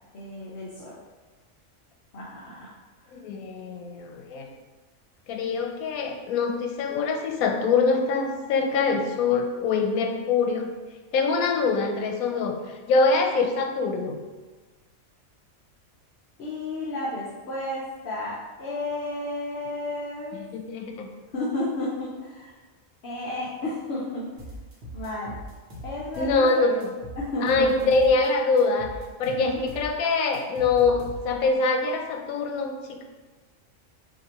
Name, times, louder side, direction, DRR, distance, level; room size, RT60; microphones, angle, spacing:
voice 1, 0.1-1.0 2.1-2.7 16.4-20.4 21.3-22.5 23.0-24.3 24.9-25.4 25.8-26.8 27.2-28.1 29.3-29.6, left 1 dB, 55° left, -6 dB, 0.9 m, -32 dB
voice 2, 3.1-4.5 5.3-10.7 11.1-12.6 12.9-14.2 20.3-21.1 26.2-26.9 27.4-28.9 29.2-33.1, left 4 dB, 85° left, 4 dB, 1.1 m, -24 dB
sound 1, 24.4-26.5 26.8-28.3 28.6-31.5, equal, 50° right, 1.1 m, -40 dB
5.9 x 2.8 x 2.9 m, 1.3 s
omnidirectional pair, 1.5 m